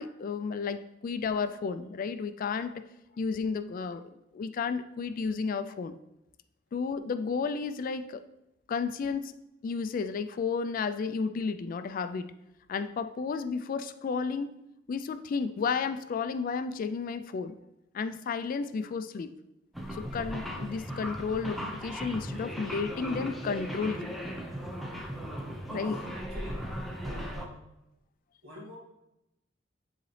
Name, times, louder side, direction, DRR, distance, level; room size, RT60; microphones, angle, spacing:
voice 1, 0.0-2.7 3.2-4.0 4.3-5.9 6.7-8.2 8.7-9.3 9.6-12.3 12.7-14.5 14.9-17.5 17.9-19.3 20.0-24.2 25.7-26.0, left 5 dB, 45° left, 11 dB, 0.3 m, -32 dB
sound 1, 19.7-27.5, equal, ahead, 0.6 m, -37 dB
voice 2, 25.7-26.7 27.0-27.6 28.4-28.8, equal, 60° right, -3 dB, 2.1 m, -47 dB
9.3 x 4.0 x 3.2 m, 0.89 s
head